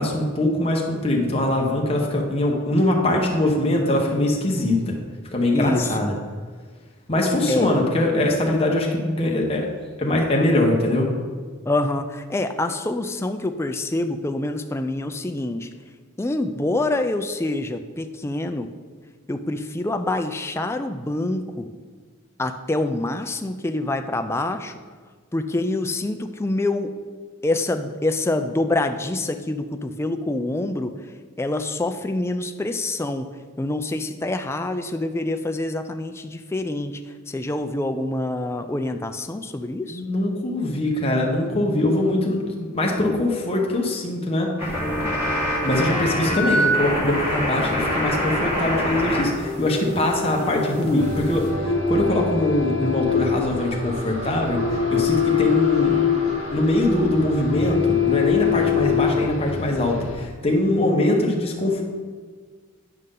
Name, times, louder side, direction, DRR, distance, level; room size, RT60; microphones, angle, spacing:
voice 1, 0.0-5.0 5.3-6.1 7.1-9.7 10.0-11.1 39.9-44.5 45.6-56.0 56.5-61.8, left 1 dB, 30° left, -1 dB, 1.1 m, -22 dB
voice 2, 5.5-6.0 7.5-7.7 11.7-15.7 16.2-18.7 19.3-21.7 22.4-24.8 25.3-27.0 27.4-30.9 31.4-33.3 33.6-37.0 37.3-40.0, left 2 dB, 15° left, 7 dB, 0.3 m, -26 dB
sound 1, 44.6-49.2 49.5-51.5, equal, 10° right, 2.0 m, -25 dB
sound 2, 44.6-46.3 47.5-59.3, left 1 dB, 30° right, 0.9 m, -33 dB
sound 3, 51.0-60.3, left 8 dB, 80° left, 0.9 m, -24 dB
9.3 x 5.4 x 3.7 m, 1.5 s
head